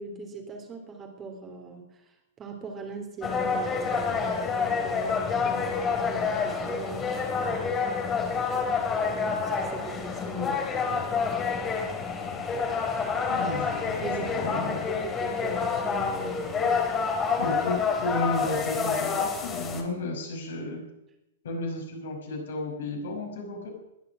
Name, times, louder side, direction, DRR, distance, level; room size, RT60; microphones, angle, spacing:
voice 1, 0.0-1.9 2.4-7.8 9.2-11.1 14.0-16.8, right 3 dB, 20° right, 3 dB, 3.4 m, -41 dB
sound 1, 3.2-19.8, left 5 dB, 20° left, 3.0 m, -28 dB
voice 2, 13.3-14.9 17.4-20.8 21.4-23.7, left 2 dB, 60° left, 1 dB, 5.5 m, -33 dB
21.0 x 11.0 x 6.3 m, 0.88 s
figure-of-eight pair, 105°, 0 cm